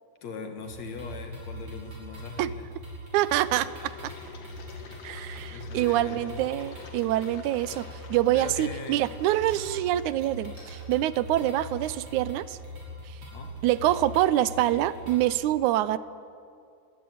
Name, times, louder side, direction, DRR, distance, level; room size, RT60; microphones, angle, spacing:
voice 1, 0.2-2.7 5.5-6.4 8.3-9.0 13.3-13.5, left 4 dB, 65° left, 6 dB, 3.0 m, -40 dB
sound 1, 0.6-15.3, equal, 55° right, 7.1 m, -42 dB
voice 2, 3.1-3.9 5.0-12.6 13.1-13.2 13.6-16.0, right 14 dB, 85° right, 16 dB, 2.1 m, -26 dB
Engine, 3.3-11.0, left 5 dB, 85° left, 3.4 m, -49 dB
sound 2, 7.7-8.2 8.7-13.1, left 1 dB, 30° left, 7.8 m, -56 dB
20.5 x 16.0 x 9.6 m, 2.4 s
omnidirectional pair, 3.4 m